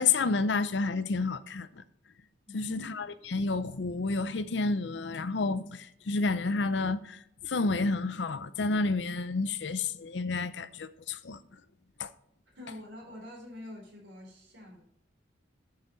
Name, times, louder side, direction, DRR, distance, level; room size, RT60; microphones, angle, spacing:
voice 1, 0.0-1.8 2.5-11.4 12.0-12.1, left 3 dB, 65° left, 0.6 m, -30 dB
voice 2, 2.5-2.9 12.5-14.8, left 1 dB, 75° right, 4.1 m, -46 dB
11.5 x 5.7 x 4.0 m
head